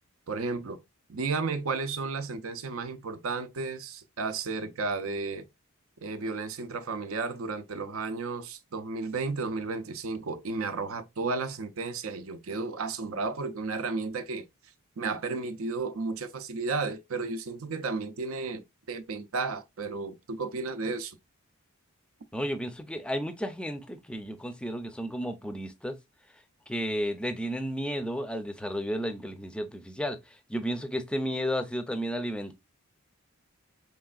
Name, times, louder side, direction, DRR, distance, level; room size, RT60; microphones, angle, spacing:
voice 1, 0.3-0.8 1.1-5.4 6.0-14.5 15.0-21.2, right 4 dB, 75° right, 0.6 m, -33 dB
voice 2, 22.3-26.0 26.7-32.5, equal, 5° left, 0.4 m, -33 dB
4.6 x 3.2 x 2.3 m
head